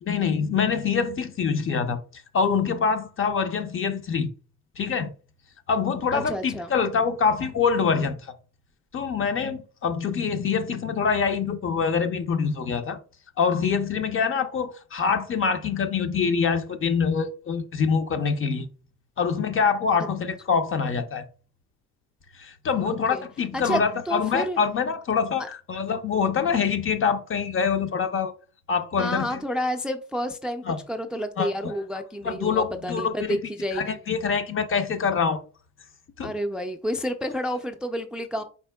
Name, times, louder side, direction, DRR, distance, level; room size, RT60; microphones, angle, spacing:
voice 1, 0.0-2.0 2.3-4.3 4.8-5.1 5.7-8.3 8.9-13.0 13.4-18.7 19.2-21.3 22.4-28.3 28.7-29.4 30.7-30.8 31.4-31.5 32.2-33.4 33.7-35.4 36.2-36.3, left 6 dB, 45° left, 0.7 m, -25 dB
voice 2, 6.1-6.7 22.7-23.2 23.5-24.6 25.4-25.5 29.0-34.0 36.2-38.4, equal, 5° right, 0.4 m, -30 dB
4.3 x 4.2 x 2.2 m
cardioid pair, 90°, 30 cm